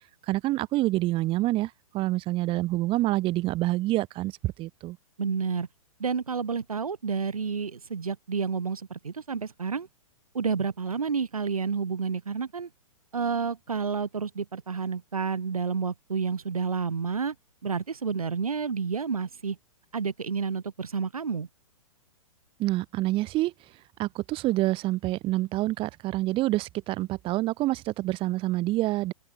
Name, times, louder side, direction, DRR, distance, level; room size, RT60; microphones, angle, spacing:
voice 1, 0.3-5.0 22.6-23.5 24.0-29.1, right 17 dB, 30° right, 1.5 m, -27 dB
voice 2, 5.2-5.7 6.0-9.9 10.3-12.7 13.1-17.3 17.6-19.6 19.9-21.5, right 5 dB, 80° right, 2.9 m, -30 dB
open air
figure-of-eight pair, 115°, 18 cm